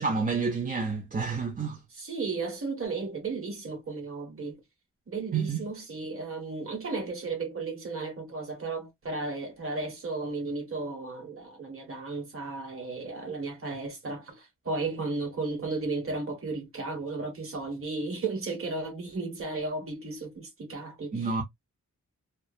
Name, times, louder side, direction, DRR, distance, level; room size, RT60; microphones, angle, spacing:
voice 1, 0.0-1.8 5.3-5.6 21.1-21.4, right 4 dB, 30° right, 0.5 m, -29 dB
voice 2, 1.9-4.6 5.1-21.4, right 3 dB, 45° right, 1.2 m, -34 dB
2.7 x 2.3 x 2.3 m
wide cardioid pair, 175°, 30 cm